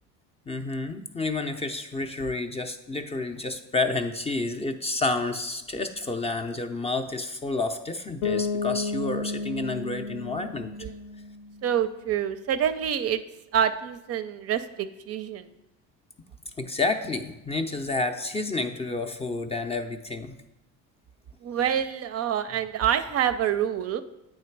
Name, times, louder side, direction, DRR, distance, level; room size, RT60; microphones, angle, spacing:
voice 1, 0.5-10.7 16.6-20.3, left 3 dB, 20° left, 7 dB, 0.5 m, -30 dB
Bass guitar, 8.2-11.9, left 4 dB, 55° left, 0.7 m, -32 dB
voice 2, 11.6-13.2 13.5-15.5 21.4-24.0, right 9 dB, 45° right, 11 dB, 0.5 m, -26 dB
8.5 x 3.3 x 4.5 m, 0.93 s
supercardioid pair, 95°, 34 cm